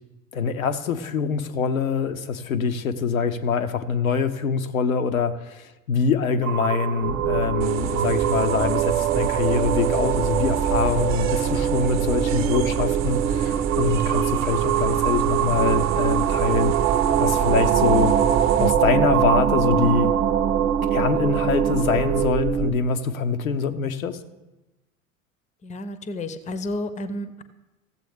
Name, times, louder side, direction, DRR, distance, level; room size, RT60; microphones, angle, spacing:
voice 1, 0.3-16.7 17.2-18.1 18.6-20.1 20.9-24.2, left 5 dB, 80° left, 0.7 m, -24 dB
sound 1, 6.4-22.2, right 10 dB, 70° right, 0.7 m, -26 dB
sound 2, 7.0-22.7, right 8 dB, 20° right, 0.3 m, -25 dB
sound 3, 7.6-18.7, right 8 dB, 40° right, 0.8 m, -30 dB
voice 2, 25.6-27.4, left 1 dB, 15° left, 0.6 m, -31 dB
14.5 x 7.5 x 3.5 m
figure-of-eight pair, 75°, 41 cm